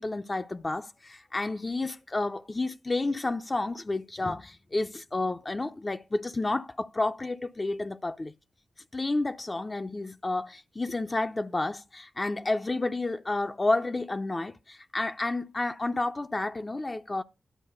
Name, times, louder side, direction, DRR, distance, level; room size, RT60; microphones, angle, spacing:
voice 1, 0.0-8.3 8.9-17.2, left 2 dB, 35° left, 0.7 m, -30 dB
11.0 x 4.6 x 8.0 m
supercardioid pair, 45°, 0 cm